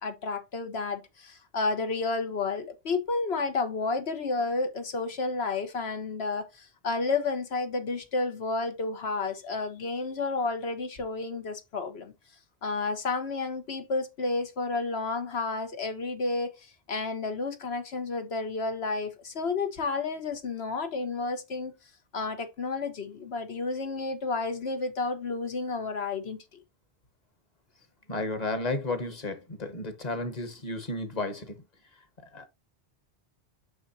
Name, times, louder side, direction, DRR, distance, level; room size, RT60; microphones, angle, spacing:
voice 1, 0.0-12.1 12.6-21.7 22.1-26.4, left 3 dB, 75° left, 1.4 m, -31 dB
voice 2, 28.1-31.6 32.3-32.5, left 2 dB, 40° left, 1.4 m, -33 dB
6.4 x 6.0 x 2.7 m
omnidirectional pair, 1.1 m